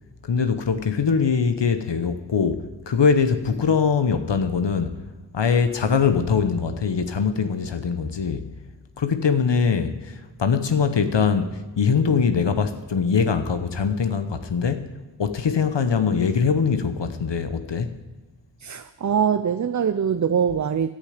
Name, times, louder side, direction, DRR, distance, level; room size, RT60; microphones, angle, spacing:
voice 1, 0.3-5.0 5.3-8.5 9.0-14.9 15.2-17.9, left 6 dB, 70° left, 1.0 m, -22 dB
voice 2, 18.6-20.9, right 7 dB, 40° right, 0.5 m, -23 dB
17.5 x 10.0 x 5.0 m
cardioid pair, 50°, 45 cm